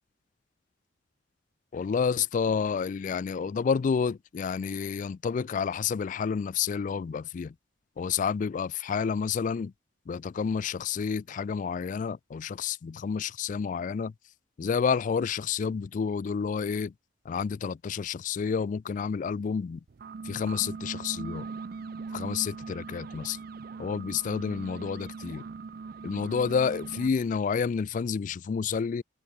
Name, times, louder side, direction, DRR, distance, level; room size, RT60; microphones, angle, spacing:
voice 1, 1.7-7.5 8.0-9.7 10.1-14.1 14.6-16.9 17.3-19.8 20.2-21.5 22.1-23.4 23.8-25.4 26.0-29.0, left 6 dB, 45° left, 0.3 m, -29 dB
sound 1, 19.9-27.1, right 4 dB, 50° right, 0.4 m, -40 dB
open air
head